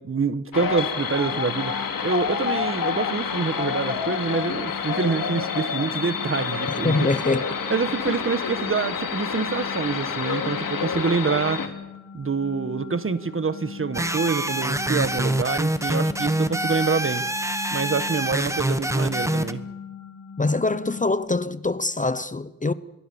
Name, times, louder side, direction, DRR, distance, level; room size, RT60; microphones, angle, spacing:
voice 1, 0.0-1.8 2.0-7.1 7.7-11.6 12.1-17.2 17.7-19.6, right 5 dB, 40° right, 1.4 m, -26 dB
sound 1, 0.5-11.7, left 6 dB, 85° left, 2.8 m, -28 dB
sound 2, 1.3-21.1, left 6 dB, 70° left, 3.5 m, -40 dB
voice 2, 6.8-7.5 20.4-22.7, left 3 dB, 25° left, 0.8 m, -24 dB
sound 3, 13.9-19.5, right 1 dB, 10° right, 1.2 m, -25 dB
27.5 x 22.5 x 7.1 m
wide cardioid pair, 125°, 33 cm